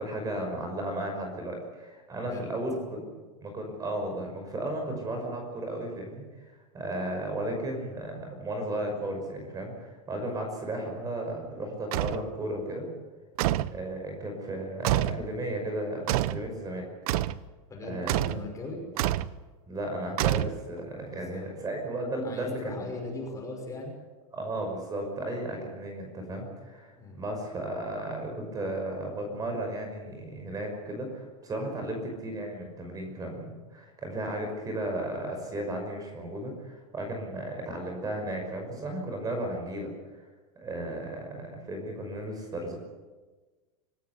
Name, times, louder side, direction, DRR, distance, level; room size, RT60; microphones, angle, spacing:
voice 1, 0.0-3.1 3.4-12.9 13.6-16.9 17.8-18.3 19.7-22.9 24.3-40.2 40.6-42.8, right 1 dB, 20° right, 3 dB, 5.7 m, -34 dB
sound 1, 11.9-12.3 13.4-13.8 14.8-15.2 16.1-16.4 17.1-17.4 18.1-18.5 19.0-19.3 20.2-20.8, right 14 dB, 70° right, 0.9 m, -27 dB
voice 2, 17.7-18.8 21.1-21.6 22.2-23.9 27.0-27.2, left 2 dB, 15° left, 2 dB, 5.6 m, -39 dB
25.0 x 17.0 x 8.3 m, 1.3 s
supercardioid pair, 150°, 20 cm